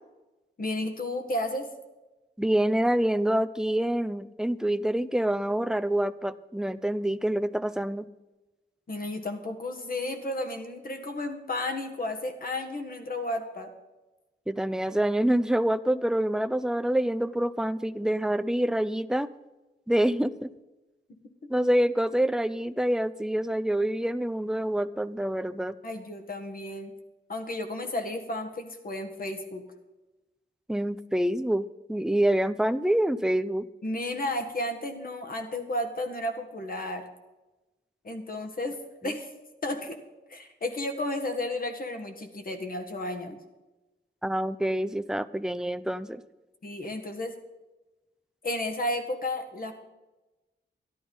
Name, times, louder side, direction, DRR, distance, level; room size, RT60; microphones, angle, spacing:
voice 1, 0.6-1.7 8.9-13.7 25.8-26.9 27.3-29.6 33.8-37.0 38.0-38.8 39.0-39.3 39.6-40.0 40.3-43.4 46.6-47.3 48.4-49.7, left 1 dB, 50° left, 5 dB, 1.7 m, -33 dB
voice 2, 2.4-8.0 14.5-19.3 19.9-20.5 21.5-25.8 30.7-33.7 44.2-46.2, right 1 dB, 5° right, 14 dB, 0.4 m, -26 dB
12.0 x 11.5 x 5.4 m, 1.1 s
wide cardioid pair, 120°, 18 cm